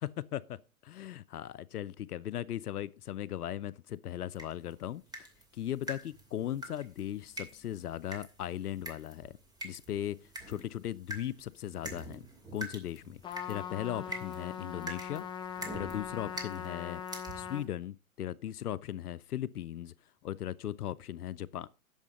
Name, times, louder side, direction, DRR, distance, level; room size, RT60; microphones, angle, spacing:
voice 1, 0.0-5.3 5.5-9.4 9.6-10.2 10.5-12.3 12.5-13.2 13.5-17.0 17.3-19.9 20.2-21.7, left 11 dB, 85° left, 0.6 m, -38 dB
sound 1, 4.3-17.6, right 1 dB, 10° right, 2.6 m, -46 dB
Trumpet, 13.2-17.7, left 8 dB, 10° left, 0.7 m, -41 dB
10.5 x 7.3 x 5.4 m
hypercardioid pair, 120°, 44 cm